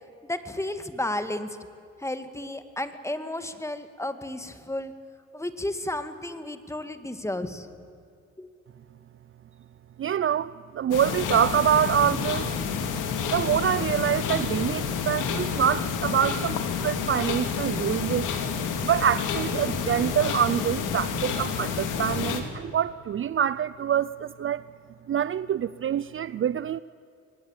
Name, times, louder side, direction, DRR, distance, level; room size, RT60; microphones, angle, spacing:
voice 1, 0.3-1.6 2.0-4.9 5.3-7.7 8.4-8.5, left 1 dB, 10° left, 10 dB, 1.9 m, -32 dB
voice 2, 10.0-12.5 13.3-18.3 18.8-24.6 25.1-26.8, right 9 dB, 45° right, 17 dB, 0.5 m, -25 dB
sound 1, 10.9-22.4, left 6 dB, 85° left, 2.7 m, -29 dB
23.5 x 19.0 x 8.8 m, 2.5 s
cardioid pair, 90°, 30 cm